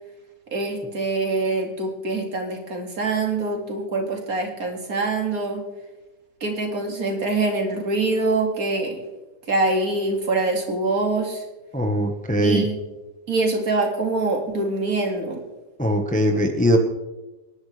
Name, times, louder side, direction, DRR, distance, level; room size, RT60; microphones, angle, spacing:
voice 1, 0.5-5.6 6.4-9.0 9.5-11.4 12.4-12.8 13.3-15.4, right 3 dB, 60° right, 2 dB, 2.6 m, -24 dB
voice 2, 11.7-12.7 15.8-16.8, equal, 5° left, 4 dB, 1.0 m, -20 dB
26.0 x 11.0 x 3.4 m, 1.1 s
omnidirectional pair, 1.7 m